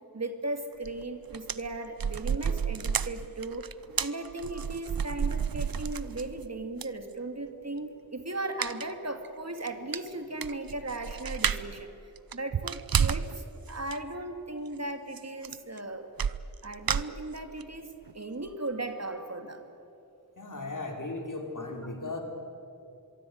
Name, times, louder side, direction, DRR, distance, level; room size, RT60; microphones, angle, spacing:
voice 1, 0.0-16.1 16.6-19.7, right 2 dB, 45° right, 6 dB, 2.6 m, -37 dB
sound 1, 0.8-1.0 1.3-6.4 6.8-6.9 8.6-8.9 9.2-9.3 9.7-9.8 9.9-11.8 12.2-13.3 13.7-14.0 15.2-15.3 15.4-15.8 16.2-17.6 18.1-18.2 18.5-18.6, right 7 dB, 70° right, 0.8 m, -31 dB
voice 2, 20.4-22.2, left 2 dB, 60° left, 2 dB, 4.2 m, -36 dB
25.5 x 23.0 x 9.5 m, 2.6 s
wide cardioid pair, 60°, 36 cm